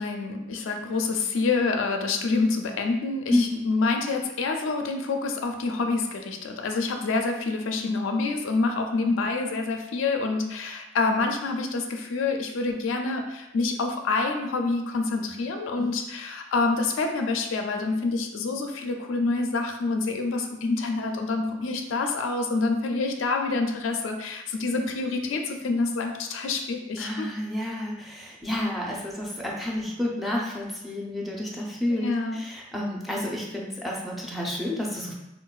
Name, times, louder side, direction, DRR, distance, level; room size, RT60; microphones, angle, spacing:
voice 1, 0.0-27.3 31.9-32.4, left 3 dB, 75° left, 4 dB, 0.4 m, -27 dB
voice 2, 3.3-3.7 15.8-15.9 27.0-35.1, left 1 dB, ahead, -3 dB, 0.4 m, -30 dB
3.8 x 2.2 x 2.3 m, 0.91 s
head